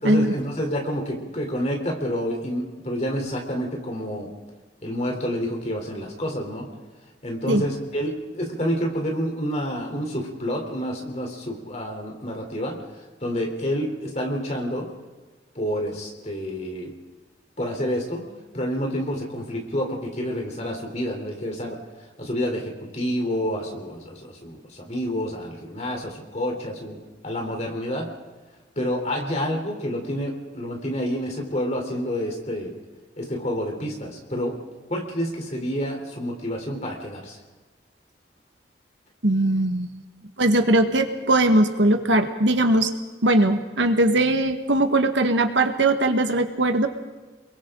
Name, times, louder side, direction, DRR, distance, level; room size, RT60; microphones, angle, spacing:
voice 1, 0.0-4.3 4.8-6.7 7.2-12.8 13.2-14.9 15.6-16.9 17.6-18.3 18.5-21.8 22.2-27.0 27.2-28.1 28.8-32.7 33.2-34.6 34.9-37.4, equal, 40° left, 1 dB, 3.7 m, -28 dB
voice 2, 39.2-39.9 40.4-42.9 43.2-46.9, right 1 dB, 85° right, 6 dB, 1.6 m, -20 dB
30.0 x 22.5 x 3.9 m, 1.3 s
head